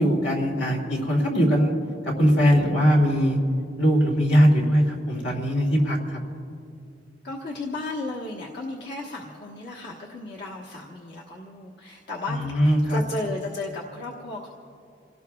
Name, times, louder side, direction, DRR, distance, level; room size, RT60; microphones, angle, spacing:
voice 1, 0.0-1.7 2.0-3.4 3.8-6.2 12.3-13.0, equal, 80° left, 0 dB, 2.7 m, -21 dB
voice 2, 7.2-12.4 12.9-14.5, left 2 dB, 60° left, -3 dB, 1.3 m, -34 dB
29.0 x 18.0 x 2.4 m, 2.4 s
head